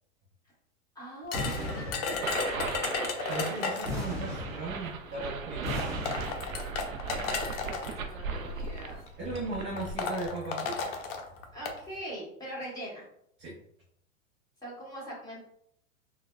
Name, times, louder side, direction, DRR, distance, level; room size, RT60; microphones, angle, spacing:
voice 1, 0.9-2.8 7.1-9.0 11.5-13.1 14.6-15.4, right 1 dB, 10° left, -6 dB, 1.4 m, -42 dB
sound 1, 1.3-4.1 5.1-5.2 5.8-7.9 8.8-9.1 9.4-9.5 9.8-11.8, left 5 dB, 45° left, 0.6 m, -34 dB
sound 2, 1.3-2.6 3.8-5.1 5.6-6.8, left 1 dB, 10° right, 1.0 m, -36 dB
sound 3, 2.2-10.3, right 5 dB, 90° right, 0.5 m, -38 dB
voice 2, 3.3-5.9 9.2-10.8 13.4-13.6, right 2 dB, 30° right, -5 dB, 0.7 m, -37 dB
3.9 x 2.2 x 2.2 m, 0.72 s
hypercardioid pair, 110°, 40 cm